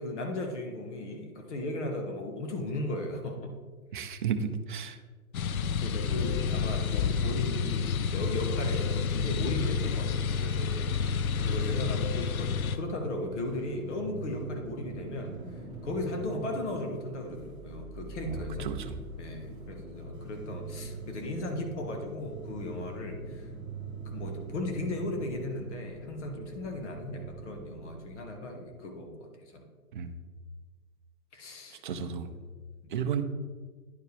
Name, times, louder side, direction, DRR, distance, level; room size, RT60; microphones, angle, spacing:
voice 1, 0.0-3.5 3.9-4.0 5.7-15.3 15.8-18.7 19.2-23.5 24.0-29.3 29.5-29.6 31.3-32.1 32.4-32.5 32.8-32.9, left 1 dB, 50° left, 3 dB, 1.4 m, -36 dB
voice 2, 3.9-5.0 18.3-18.9 29.9-30.1 31.8-32.3 32.9-33.2, right 7 dB, 35° right, 7 dB, 0.5 m, -33 dB
sound 1, 5.3-12.8, left 6 dB, 70° left, 0.6 m, -29 dB
sound 2, 11.0-28.4, right 3 dB, 10° right, 1.9 m, -43 dB
10.0 x 4.6 x 3.3 m, 1.4 s
hypercardioid pair, 140°, 45 cm